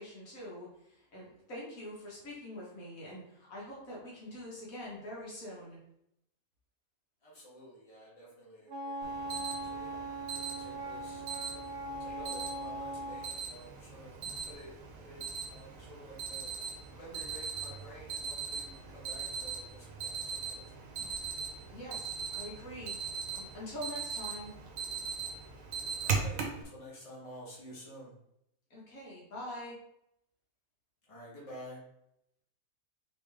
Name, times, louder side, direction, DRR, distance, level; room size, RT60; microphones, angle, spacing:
voice 1, 0.0-5.8 21.7-24.5 28.7-29.8, left 1 dB, 80° left, -5 dB, 1.9 m, -44 dB
voice 2, 7.2-11.2 12.0-14.1 14.5-15.2 15.5-16.5 16.9-20.9 25.8-28.1 31.1-31.8, equal, 25° left, -7 dB, 1.5 m, -51 dB
Wind instrument woodwind instrument, 8.7-13.3, right 1 dB, 50° right, 0.7 m, -40 dB
Alarm, 9.0-26.6, right 5 dB, 70° right, 1.1 m, -40 dB
3.7 x 3.4 x 3.4 m, 0.77 s
omnidirectional pair, 1.5 m